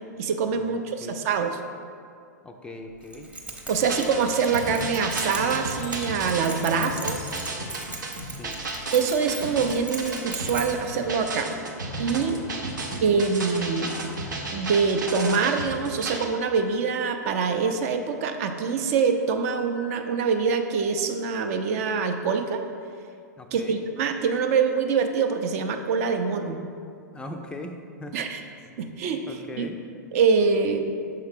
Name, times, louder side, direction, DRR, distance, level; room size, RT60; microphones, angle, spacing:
voice 1, 0.2-1.6 3.7-7.3 8.9-11.5 12.0-12.4 13.0-14.0 14.5-22.6 23.5-26.6 28.1-28.4 28.8-29.7 30.1-30.9, right 5 dB, 50° right, 6 dB, 0.5 m, -25 dB
voice 2, 2.4-3.3 8.3-8.6 12.4-13.0 23.4-23.8 27.1-28.3 29.3-29.8, left 2 dB, 10° left, 4 dB, 0.4 m, -40 dB
Keys jangling, 3.0-11.0, right 2 dB, 10° right, 0.8 m, -39 dB
sound 1, 3.7-16.3, right 2 dB, 85° right, 0.7 m, -34 dB
6.5 x 4.6 x 3.5 m, 2.3 s
hypercardioid pair, 110°, 10 cm